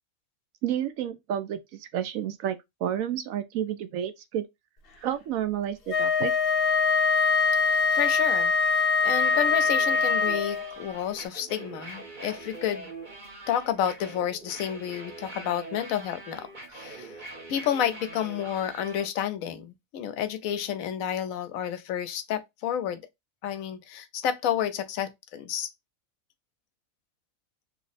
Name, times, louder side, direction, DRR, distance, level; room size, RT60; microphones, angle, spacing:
voice 1, 0.6-4.5 5.0-6.3, right 10 dB, 85° right, 1.0 m, -30 dB
Wind instrument woodwind instrument, 5.9-10.8, left 5 dB, 55° left, 0.8 m, -23 dB
voice 2, 7.6-12.9 13.5-17.1 17.5-23.0 23.4-25.7, left 9 dB, 90° left, 1.0 m, -30 dB
sound 1, 9.1-19.1, right 2 dB, 40° right, 0.9 m, -43 dB
3.1 x 2.0 x 4.0 m
omnidirectional pair, 1.4 m